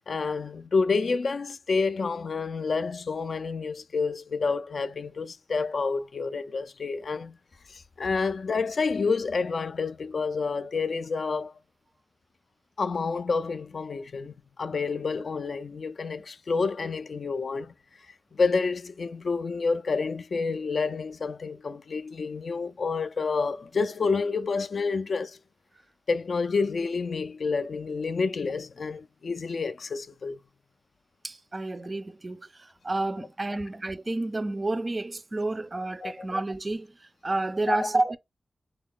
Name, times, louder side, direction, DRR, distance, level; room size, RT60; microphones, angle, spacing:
voice 1, 0.0-7.4 7.7-11.5 12.8-17.7 18.3-25.4 26.1-30.4 36.0-36.3 37.7-37.9, left 4 dB, 60° left, 0.3 m, -29 dB
voice 2, 31.2-38.2, right 2 dB, 30° right, 0.4 m, -30 dB
3.6 x 2.3 x 3.6 m
wide cardioid pair, 95°, 0 cm